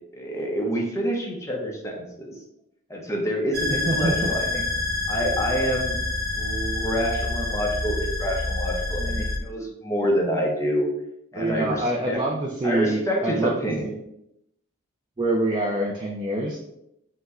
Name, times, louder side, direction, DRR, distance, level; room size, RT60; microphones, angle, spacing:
voice 1, 0.1-2.4 2.9-4.6 5.1-6.0 6.4-10.9 11.3-12.2 12.6-13.9, equal, 15° left, 0 dB, 0.7 m, -27 dB
sound 1, 3.5-9.4, left 2 dB, 65° right, 0.7 m, -27 dB
voice 2, 3.9-4.4 9.0-9.3 11.3-13.6 13.8-14.0 15.2-16.6, right 1 dB, 25° right, -1 dB, 0.4 m, -26 dB
5.3 x 2.1 x 3.6 m, 0.81 s
head